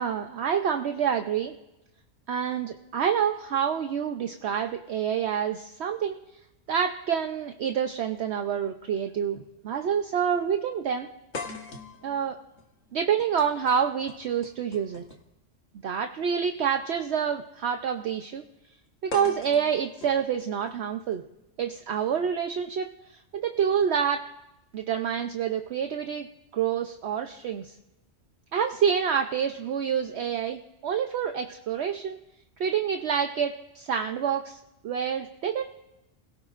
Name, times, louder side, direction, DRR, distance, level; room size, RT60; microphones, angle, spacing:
voice 1, 0.0-1.5 2.3-6.2 6.7-11.1 12.0-12.4 12.9-15.0 15.8-18.4 19.0-21.2 21.6-24.2 24.7-26.3 26.5-27.7 28.5-32.2 32.6-34.6 34.8-35.6, right 8 dB, 65° right, 6 dB, 0.9 m, -27 dB
sound 1, 8.1-8.2 9.3-9.5 9.9-10.0 11.3-15.4 16.6-16.7 19.1-21.1, left 3 dB, 90° left, 1.9 m, -42 dB
29.5 x 17.5 x 2.5 m, 0.94 s
omnidirectional pair, 1.3 m